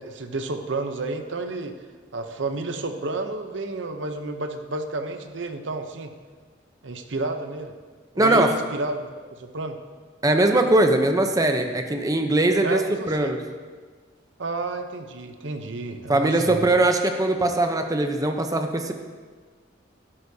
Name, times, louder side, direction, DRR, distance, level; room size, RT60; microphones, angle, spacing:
voice 1, 0.0-1.7 2.1-6.1 6.8-7.7 8.1-9.1 9.4-9.8 12.6-13.3 14.4-16.6, right 2 dB, 75° right, 6 dB, 0.8 m, -31 dB
voice 2, 8.2-8.5 10.2-12.8 13.1-13.4 16.1-18.9, right 2 dB, 20° right, 5 dB, 0.8 m, -20 dB
12.5 x 11.5 x 2.8 m, 1.5 s
head